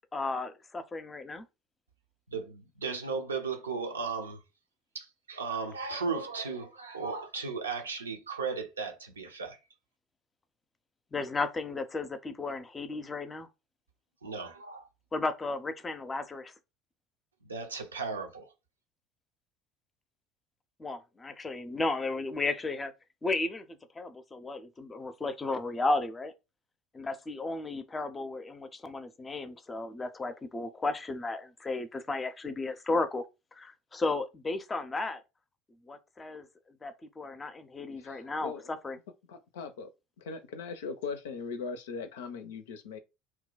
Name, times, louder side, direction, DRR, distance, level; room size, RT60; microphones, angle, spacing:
voice 1, 0.1-1.4 11.1-13.5 15.1-16.5 20.8-22.9 23.2-23.7 24.0-26.3 26.9-33.2 33.5-35.2 35.9-36.5 36.8-39.0, left 3 dB, 20° left, 0.6 m, -34 dB
voice 2, 2.3-4.4 4.9-9.6 14.2-14.9 17.4-18.5, right 4 dB, 85° right, 0.6 m, -36 dB
voice 3, 38.0-38.8 39.3-39.9 40.2-43.0, left 5 dB, 70° left, 0.5 m, -39 dB
2.9 x 2.2 x 3.8 m
figure-of-eight pair, 65°, 0 cm